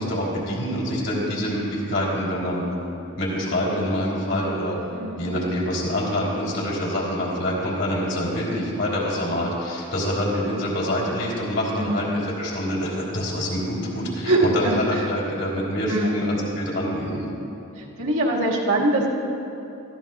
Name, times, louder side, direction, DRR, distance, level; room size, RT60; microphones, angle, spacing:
voice 1, 0.0-2.6 3.2-4.8 5.2-17.3, equal, 55° left, -5 dB, 3.5 m, -26 dB
voice 2, 14.2-14.8 15.9-16.2 17.8-19.1, right 2 dB, 70° right, -3 dB, 1.9 m, -22 dB
21.5 x 15.0 x 2.4 m, 2.8 s
head